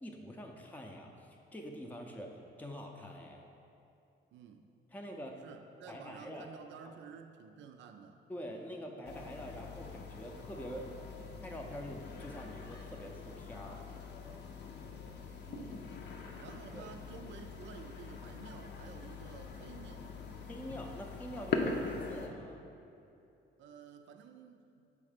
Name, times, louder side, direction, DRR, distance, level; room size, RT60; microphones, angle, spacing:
voice 1, 0.0-2.3 2.6-3.4 4.9-5.4 5.9-6.5 6.8-6.9 8.3-10.9 11.4-13.8 16.7-16.9 20.5-22.6, equal, 10° left, 1 dB, 0.5 m, -45 dB
voice 2, 4.3-4.7 5.4-8.2 15.4-15.9 16.4-20.1 23.6-24.9, right 7 dB, 70° right, 6 dB, 0.4 m, -52 dB
sound 1, 9.1-22.3, left 4 dB, 60° left, 0.6 m, -43 dB
6.9 x 3.2 x 5.0 m, 2.8 s
cardioid pair, 90°, 20 cm